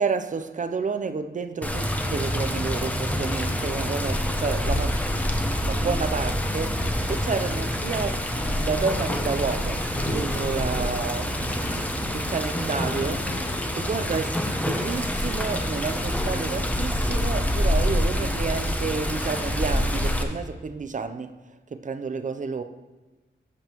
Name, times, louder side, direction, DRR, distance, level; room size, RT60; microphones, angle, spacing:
voice 1, 0.0-5.0 5.6-11.3 11.6-13.4 13.7-21.4 21.7-22.6, right 5 dB, 40° right, 0.5 m, -30 dB
Water, 1.6-20.2, equal, 5° left, 0.8 m, -26 dB
sound 1, 8.4-17.9, equal, 70° left, 3.0 m, -44 dB
Thunder, 9.8-15.6, left 1 dB, 30° left, 2.4 m, -38 dB
13.5 x 5.3 x 3.0 m
wide cardioid pair, 75°, 20 cm